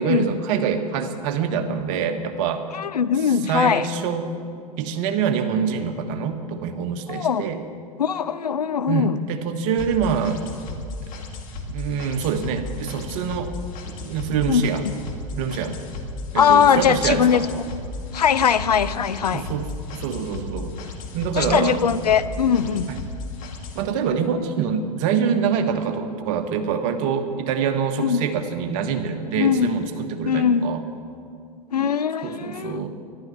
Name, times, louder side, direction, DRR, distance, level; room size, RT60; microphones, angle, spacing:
voice 1, 0.0-2.7 3.5-4.3 4.8-7.6 8.9-10.4 11.1-11.2 11.7-13.5 13.8-14.8 15.4-15.8 16.3-17.4 19.3-19.7 19.9-20.8 21.1-21.9 23.7-30.8 32.2-32.9, right 6 dB, 55° right, 6 dB, 1.4 m, -25 dB
voice 2, 2.7-3.9 7.1-7.4 8.0-9.2 14.5-14.9 16.3-17.5 18.1-19.5 21.3-22.9 28.0-28.2 29.4-29.7 30.2-30.7 31.7-32.8, left 7 dB, 85° left, 14 dB, 0.6 m, -20 dB
sound 1, 9.8-23.8, left 3 dB, 45° left, 1.9 m, -35 dB
11.5 x 11.5 x 8.5 m, 2.4 s
hypercardioid pair, 90°, 20 cm